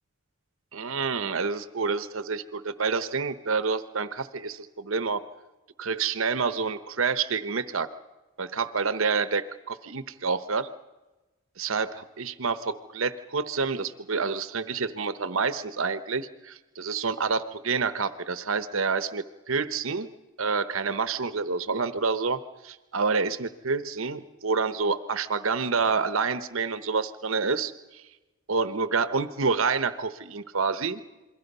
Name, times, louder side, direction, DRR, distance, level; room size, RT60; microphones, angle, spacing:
voice 1, 0.7-5.2 5.8-7.9 8.4-10.7 11.6-20.1 20.4-28.0 28.5-31.0, right 4 dB, 70° right, 13 dB, 1.0 m, -28 dB
27.5 x 22.0 x 5.5 m, 1.1 s
head